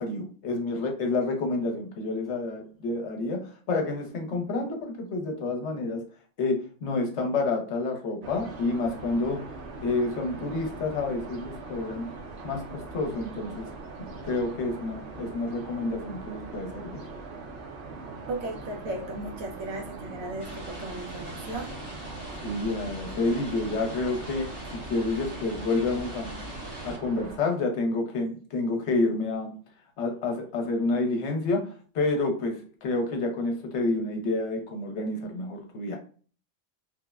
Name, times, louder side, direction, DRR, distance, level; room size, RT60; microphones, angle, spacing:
voice 1, 0.0-6.1 6.4-9.6 9.8-12.1 12.4-13.7 14.0-17.0 22.3-26.4 26.8-29.6 30.0-36.0, left 3 dB, 65° left, 3 dB, 0.9 m, -29 dB
sound 1, 8.2-27.4, right 3 dB, 65° right, 0.8 m, -41 dB
voice 2, 18.3-21.8, right 1 dB, 90° right, 2 dB, 1.1 m, -36 dB
sound 2, 20.4-27.0, equal, 30° right, 0.5 m, -41 dB
3.2 x 2.0 x 2.3 m, 0.41 s
omnidirectional pair, 1.3 m